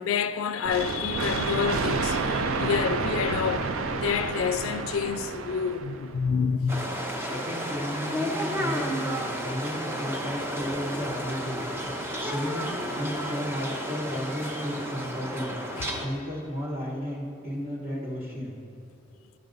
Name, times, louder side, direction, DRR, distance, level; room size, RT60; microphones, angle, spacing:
voice 1, 0.0-6.8 15.7-16.0, left 6 dB, 85° left, 0.3 m, -28 dB
sound 1, 0.6-6.2, right 4 dB, 85° right, 0.5 m, -29 dB
sound 2, 6.7-16.1, equal, 10° right, 0.6 m, -32 dB
voice 2, 7.2-15.6 16.0-18.6, equal, 30° right, 1.1 m, -34 dB
11.0 x 6.7 x 3.9 m
head